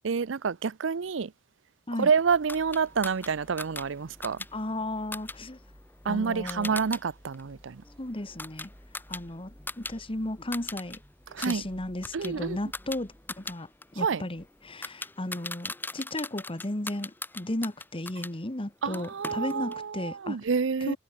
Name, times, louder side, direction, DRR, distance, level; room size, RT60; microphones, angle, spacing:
voice 1, 0.0-1.3 2.0-4.4 6.1-7.8 11.3-11.6 12.1-12.6 14.0-14.2 18.8-21.0, right 5 dB, 70° right, 0.5 m, -28 dB
sound 1, 2.3-14.9, equal, 10° right, 6.0 m, -56 dB
sound 2, 2.5-7.0 7.3-10.0 10.2-11.0 11.3-18.3 18.9-19.8, left 2 dB, 10° left, 1.6 m, -41 dB
voice 2, 4.5-5.6 6.1-6.8 8.0-8.7 9.1-11.0 11.4-13.7 14.0-20.4 20.8-21.0, left 1 dB, 30° left, 1.7 m, -34 dB
head